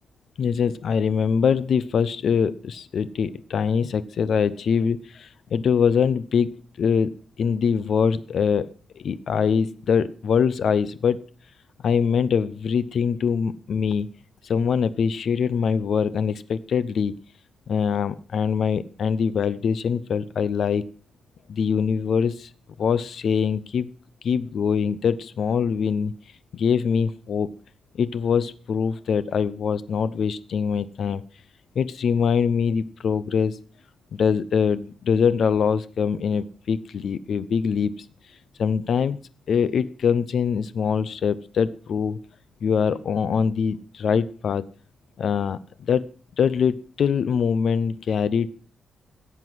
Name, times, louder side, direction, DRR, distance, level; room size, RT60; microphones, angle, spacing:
voice 1, 0.4-6.5 6.8-7.1 7.4-11.2 11.8-14.1 14.4-17.1 17.7-20.8 21.5-22.5 22.8-23.9 24.2-26.1 26.5-27.5 27.9-31.2 31.8-33.6 34.1-37.9 38.6-39.2 39.5-42.2 42.6-44.7 45.2-46.1 46.4-48.5, left 6 dB, 55° left, 15 dB, 0.6 m, -23 dB
16.0 x 7.8 x 6.1 m, 0.42 s
wide cardioid pair, 170°, 0 cm